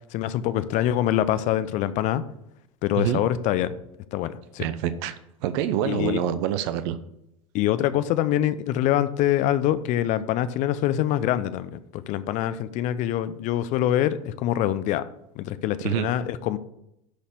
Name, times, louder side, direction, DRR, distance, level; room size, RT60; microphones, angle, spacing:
voice 1, 0.1-2.2 2.8-3.7 4.1-4.7 5.8-6.2 7.5-15.0 15.4-16.6, left 12 dB, 45° left, 14 dB, 0.7 m, -25 dB
voice 2, 4.6-7.0 15.8-16.1, right 10 dB, 55° right, 12 dB, 0.7 m, -26 dB
11.5 x 4.2 x 6.8 m, 0.82 s
figure-of-eight pair, 80°, 18 cm